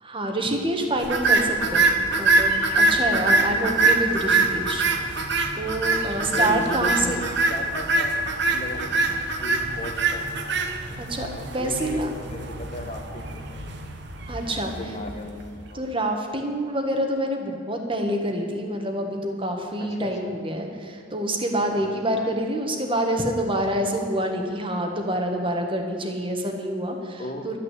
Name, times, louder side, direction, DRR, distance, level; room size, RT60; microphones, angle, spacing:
voice 1, 0.0-5.1 5.6-7.2 11.0-12.1 14.3-14.7 15.7-27.6, right 1 dB, 25° right, 3 dB, 1.6 m, -27 dB
sound 1, 1.0-15.4, right 3 dB, 60° right, 1.4 m, -24 dB
voice 2, 4.0-4.5 6.3-8.2 8.5-10.3 10.9-13.7 14.4-15.4 15.7-15.9 19.8-20.3 21.7-22.0 27.2-27.6, left 1 dB, 35° left, 4 dB, 1.6 m, -36 dB
12.5 x 9.3 x 8.3 m, 2.6 s
head